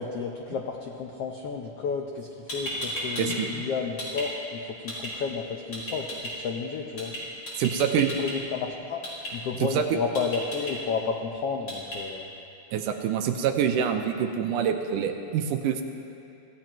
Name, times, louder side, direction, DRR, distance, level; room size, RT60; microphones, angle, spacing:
voice 1, 0.0-7.1 7.8-7.9 8.2-9.0 9.3-12.3, left 5 dB, 85° left, 1 dB, 1.3 m, -32 dB
sound 1, 2.2-2.3 2.5-3.4 3.7-4.3 4.9-5.1 5.7-6.3 7.0-7.2 7.5-8.3 9.0-9.3 10.1-10.7 11.7-12.0, equal, 35° left, 5.2 m, -34 dB
voice 2, 3.2-3.7 7.6-8.1 9.6-10.0 12.7-15.8, right 8 dB, 80° right, 5 dB, 2.2 m, -26 dB
26.0 x 16.5 x 3.0 m, 2.6 s
omnidirectional pair, 4.0 m